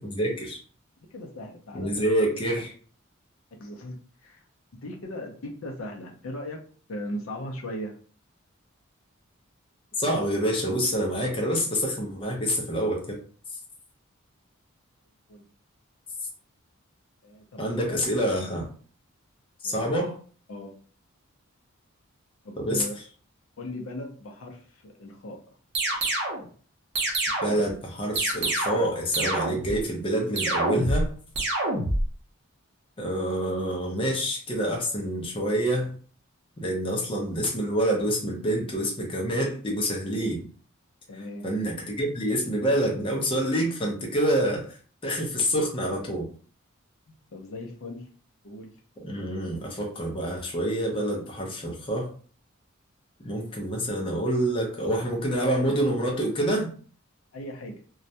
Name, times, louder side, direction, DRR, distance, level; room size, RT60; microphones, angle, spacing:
voice 1, 0.0-0.6 1.7-2.7 10.0-13.2 17.6-18.7 19.6-20.1 22.6-22.8 27.4-31.1 33.0-36.0 36.6-40.5 41.4-46.3 49.0-52.1 53.2-56.7, equal, 25° left, -1 dB, 0.6 m, -27 dB
voice 2, 1.1-2.3 3.6-4.4 4.8-6.6 6.9-7.9 15.3-15.5 17.2-18.3 19.6-20.0 20.5-20.7 22.4-22.9 23.6-25.4 41.1-41.5 47.1-48.0 48.4-48.7 57.3-57.8, left 1 dB, 70° left, 2 dB, 0.5 m, -38 dB
sound 1, 25.8-26.4 27.0-27.7 28.2-28.9 29.1-29.8 30.4-31.1 31.4-32.0, right 2 dB, 55° right, 0.6 m, -26 dB
2.3 x 2.1 x 2.7 m, 0.43 s
head